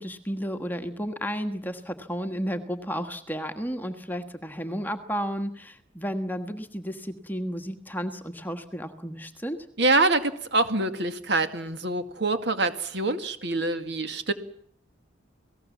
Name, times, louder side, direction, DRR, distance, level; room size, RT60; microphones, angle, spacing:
voice 1, 0.0-9.6, equal, 10° left, 7 dB, 1.5 m, -32 dB
voice 2, 9.8-14.3, right 2 dB, 60° right, 8 dB, 2.2 m, -25 dB
28.5 x 18.5 x 7.3 m, 0.65 s
head